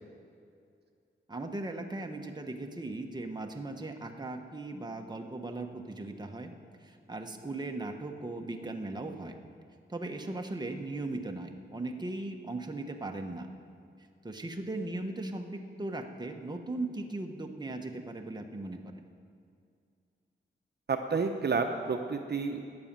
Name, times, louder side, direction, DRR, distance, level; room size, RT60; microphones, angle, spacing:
voice 1, 1.3-6.5 6.8-9.3 9.9-13.5 14.2-19.0, right 2 dB, 20° right, 3 dB, 1.2 m, -38 dB
voice 2, 20.9-22.6, right 4 dB, 55° right, 4 dB, 0.8 m, -30 dB
15.0 x 9.9 x 7.5 m, 2.3 s
wide cardioid pair, 110°, 21 cm